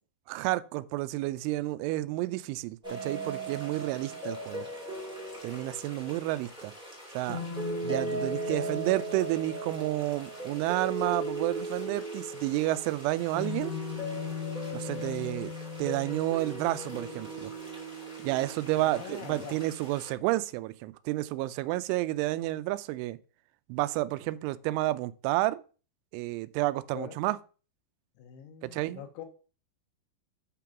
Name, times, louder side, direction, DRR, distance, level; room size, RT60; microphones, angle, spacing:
voice 1, 0.3-4.7 5.4-6.7 7.1-7.4 7.8-13.8 14.7-15.5 15.8-17.5 18.2-23.2 23.7-25.6 26.1-27.4 28.6-29.0, right 17 dB, 90° right, 3.0 m, -30 dB
sound 1, 2.8-20.1, equal, ahead, 1.4 m, -37 dB
voice 2, 4.1-4.6 15.4-15.5 18.8-19.6 26.9-27.2 28.2-29.3, left 9 dB, 80° left, 3.4 m, -44 dB
9.1 x 3.8 x 5.7 m
omnidirectional pair, 5.4 m